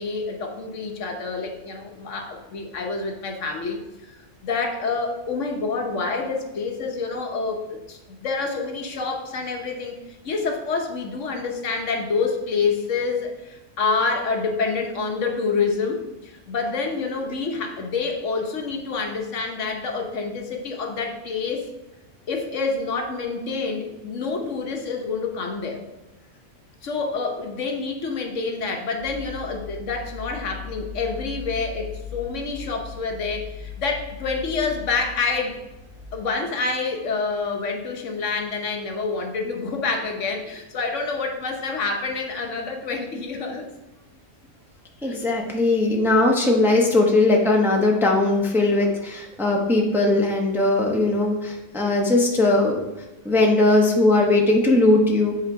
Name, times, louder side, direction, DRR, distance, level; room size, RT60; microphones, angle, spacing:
voice 1, 0.0-4.1 4.4-10.0 10.2-21.7 22.3-25.8 26.8-35.6 36.1-43.7 45.0-45.2, left 4 dB, 70° left, 3 dB, 1.2 m, -27 dB
sound 1, 29.0-36.2, left 7 dB, 80° right, 2.9 m, -38 dB
voice 2, 45.0-52.8 53.2-55.3, left 2 dB, ahead, -1 dB, 0.8 m, -19 dB
7.8 x 4.3 x 4.7 m, 1.0 s
omnidirectional pair, 1.3 m